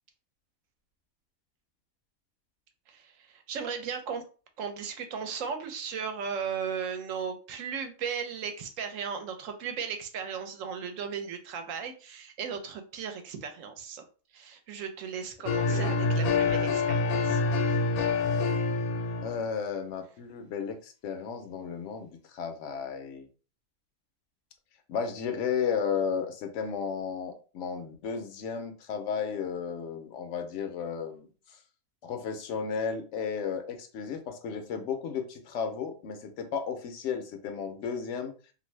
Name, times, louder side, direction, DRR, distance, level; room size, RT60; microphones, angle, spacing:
voice 1, 2.9-4.2 4.6-14.0 14.3-17.4 17.7-17.8, right 6 dB, 70° right, 6 dB, 0.9 m, -36 dB
sound 1, 15.5-19.4, left 3 dB, 85° left, 1.1 m, -26 dB
voice 2, 18.2-18.5 19.2-23.3 24.9-31.6 32.0-38.3, left 6 dB, 65° left, 6 dB, 0.8 m, -34 dB
2.6 x 2.5 x 3.1 m, 0.36 s
omnidirectional pair, 1.5 m